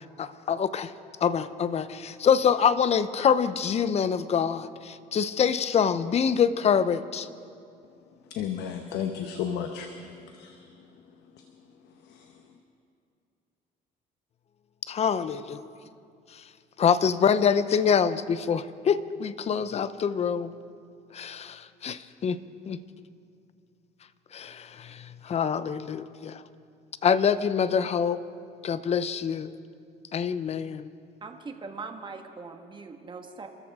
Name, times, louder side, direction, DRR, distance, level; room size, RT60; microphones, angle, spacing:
voice 1, 0.2-0.9 1.2-7.3 14.9-15.7 16.3-16.4 16.8-20.6 21.1-22.4 22.7-22.8 24.3-26.4 27.0-28.2 28.6-29.5 30.1-30.9, left 7 dB, 40° left, 14 dB, 0.7 m, -25 dB
voice 2, 8.3-10.9 11.3-11.4 11.8-12.5, left 8 dB, 80° left, 5 dB, 1.0 m, -35 dB
voice 3, 31.2-33.5, right 4 dB, 30° right, 4 dB, 1.6 m, -41 dB
28.0 x 13.5 x 3.7 m, 2.4 s
cardioid pair, 110°, 17 cm